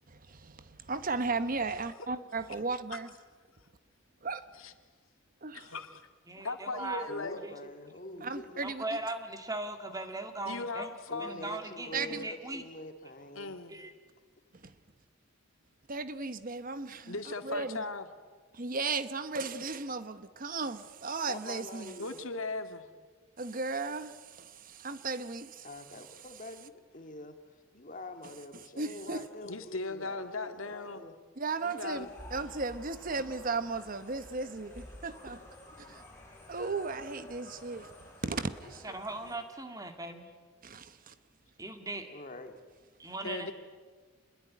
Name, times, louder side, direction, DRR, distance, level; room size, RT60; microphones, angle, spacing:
voice 1, 0.1-3.1 4.2-4.4 5.4-5.7 8.2-8.8 11.9-12.2 14.6-14.7 15.9-17.8 18.5-22.0 23.4-25.7 28.8-29.2 31.4-35.4 35.8-36.0 36.5-37.9 38.2-38.9 40.6-41.1, right 4 dB, 40° right, 1.0 m, -36 dB
voice 2, 5.5-6.0 6.4-7.4 10.5-11.4 13.4-13.8 17.1-18.0 22.0-22.9 29.4-31.0 31.6-32.1 43.2-43.5, left 3 dB, 75° left, 2.1 m, -38 dB
voice 3, 6.3-7.1 7.4-7.6 8.6-12.6 13.7-13.9 38.8-40.2 41.6-42.1 43.0-43.5, right 2 dB, 15° right, 2.2 m, -39 dB
voice 4, 7.1-8.6 11.1-13.5 21.3-22.2 25.6-27.4 27.7-31.2 42.1-42.6, left 2 dB, 40° left, 2.1 m, -45 dB
sound 1, 31.9-39.4, left 1 dB, 10° left, 7.4 m, -51 dB
27.0 x 21.5 x 9.6 m
head